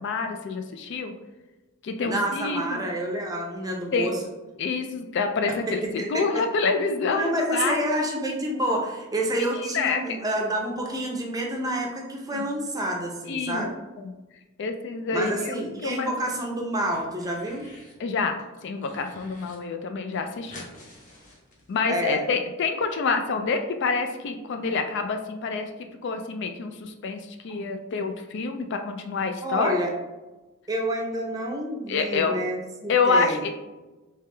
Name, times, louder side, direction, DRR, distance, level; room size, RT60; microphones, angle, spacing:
voice 1, 0.0-1.1 1.8-2.9 3.9-4.1 4.6-7.8 9.4-10.2 12.3-12.5 13.3-13.7 14.0-14.1 14.6-16.1 18.0-20.6 21.7-25.7 26.0-29.7 31.9-32.4 32.9-33.5, left 4 dB, 55° left, 6 dB, 0.3 m, -27 dB
voice 2, 2.0-4.2 6.0-6.1 7.1-13.8 15.1-17.7 21.9-22.2 29.4-29.9 30.7-33.4, right 1 dB, 15° right, 0 dB, 0.5 m, -28 dB
sound 1, 15.8-16.4 16.7-18.0 18.4-19.6 19.8-19.9 20.1-22.0, left 1 dB, 35° left, 0.9 m, -48 dB
3.4 x 3.3 x 3.2 m, 1.1 s
head